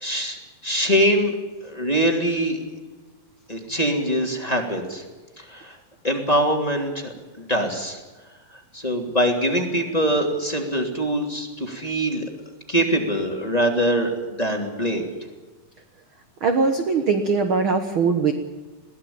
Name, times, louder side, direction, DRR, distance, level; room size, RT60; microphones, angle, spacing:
voice 1, 0.0-1.3 1.6-2.6 3.5-5.0 5.4-5.8 6.0-8.0 8.7-12.2 12.7-15.1, equal, 10° left, 2 dB, 2.7 m, -23 dB
voice 2, 16.4-18.3, right 4 dB, 55° right, 7 dB, 1.5 m, -21 dB
22.0 x 17.0 x 8.7 m, 1.2 s
omnidirectional pair, 4.2 m